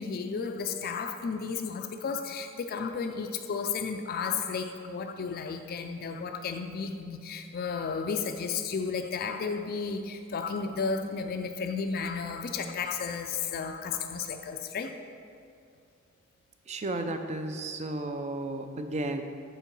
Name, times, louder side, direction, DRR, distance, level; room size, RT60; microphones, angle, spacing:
voice 1, 0.0-14.9, left 5 dB, 45° left, 6 dB, 0.3 m, -33 dB
voice 2, 16.7-19.2, right 2 dB, 30° right, 6 dB, 0.5 m, -33 dB
7.2 x 4.7 x 5.3 m, 2.3 s
head